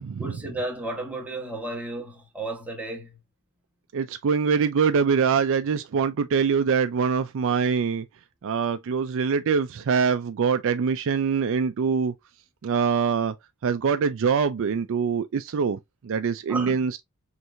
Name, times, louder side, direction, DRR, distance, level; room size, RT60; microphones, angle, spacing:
voice 1, 0.2-3.2 16.5-16.8, right 2 dB, 5° right, 1.2 m, -33 dB
voice 2, 3.9-8.0 8.4-12.1 12.6-13.3 13.6-17.0, right 6 dB, 65° right, 0.4 m, -24 dB
4.6 x 3.2 x 2.5 m
head